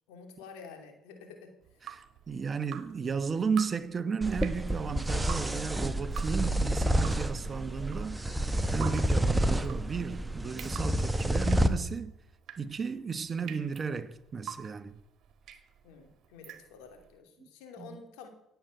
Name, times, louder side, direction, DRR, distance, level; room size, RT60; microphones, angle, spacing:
voice 1, 0.1-1.5 15.8-18.3, left 5 dB, 85° left, 2.9 m, -49 dB
Drip, 1.6-17.1, right 10 dB, 65° right, 1.8 m, -47 dB
voice 2, 1.8-8.2 8.7-12.1 12.6-15.0 17.8-18.0, right 5 dB, 40° right, 1.1 m, -34 dB
sound 1, 4.2-11.7, right 1 dB, 10° right, 1.3 m, -29 dB
16.5 x 8.2 x 7.8 m
supercardioid pair, 75°, 0 cm